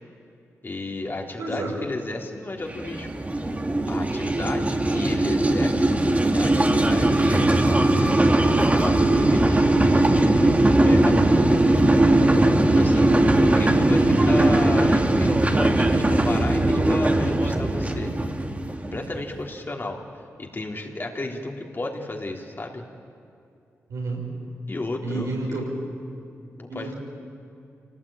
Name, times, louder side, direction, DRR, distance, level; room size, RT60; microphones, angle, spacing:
voice 1, 0.6-3.1 3.9-10.5 10.8-11.8 12.7-18.1 18.7-20.0 20.4-22.8 24.7-25.6 26.6-26.9, left 2 dB, 40° left, 1 dB, 3.5 m, -33 dB
voice 2, 1.4-1.7 12.9-13.4 23.9-24.3 25.0-25.6 26.7-26.9, right 3 dB, 90° right, -2 dB, 6.5 m, -30 dB
sound 1, 2.7-19.3, right 1 dB, 25° right, 2.1 m, -19 dB
27.5 x 18.5 x 9.0 m, 2.6 s
cardioid pair, 50°, 6 cm